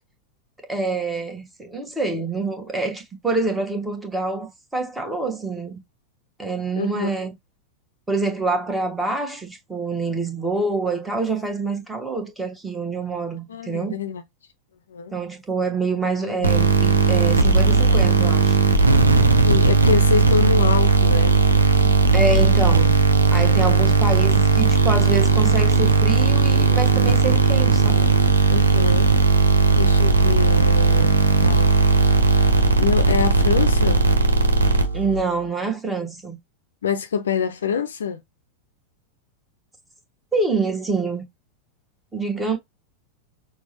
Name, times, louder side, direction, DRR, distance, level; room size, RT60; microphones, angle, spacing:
voice 1, 0.7-5.8 6.4-7.3 8.1-14.0 15.1-18.6 21.8-23.0 23.3-28.1 34.9-36.4 40.3-41.2 42.1-42.6, right 3 dB, 10° right, 1.1 m, -26 dB
voice 2, 6.8-7.1 13.5-14.2 14.9-15.1 16.2-16.4 19.4-21.3 28.5-29.1 29.7-31.7 32.8-34.0 36.8-38.2, left 7 dB, 65° left, 0.5 m, -25 dB
sound 1, 16.4-35.2, right 4 dB, 75° right, 0.6 m, -17 dB
6.0 x 2.0 x 2.8 m
figure-of-eight pair, 90°, 0 cm